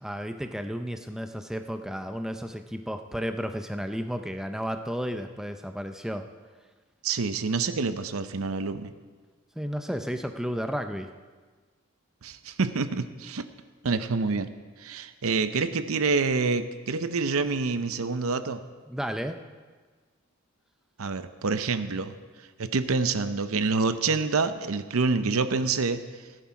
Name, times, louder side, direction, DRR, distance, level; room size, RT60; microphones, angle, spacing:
voice 1, 0.0-6.3 9.6-11.1 18.9-19.4, equal, ahead, 7 dB, 0.4 m, -33 dB
voice 2, 7.0-8.9 12.2-13.4 13.8-14.5 14.8-18.6 21.0-22.1 22.6-26.0, right 4 dB, 80° right, 11 dB, 0.7 m, -27 dB
15.5 x 10.0 x 4.7 m, 1.4 s
head